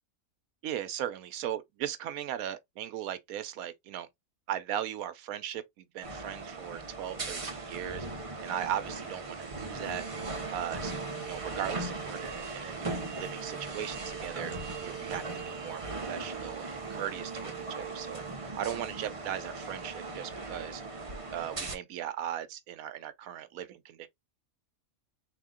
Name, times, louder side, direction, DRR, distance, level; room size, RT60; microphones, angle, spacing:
voice 1, 0.6-4.1 4.5-8.1 8.4-10.0 10.5-10.9 11.2-20.8 21.3-24.1, right 10 dB, 90° right, 1.1 m, -38 dB
sound 1, 6.0-21.7, right 3 dB, 30° right, 0.7 m, -38 dB
3.7 x 2.7 x 3.5 m
omnidirectional pair, 1.4 m